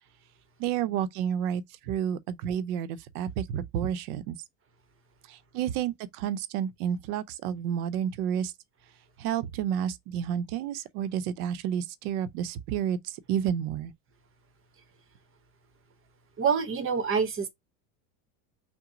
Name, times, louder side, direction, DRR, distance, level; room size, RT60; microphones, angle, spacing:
voice 1, 0.6-4.4 5.3-8.5 9.2-13.9, right 9 dB, 75° right, 0.8 m, -30 dB
voice 2, 16.4-17.5, right 6 dB, 30° right, 0.9 m, -26 dB
6.0 x 2.2 x 3.8 m
supercardioid pair, 120°, 45 cm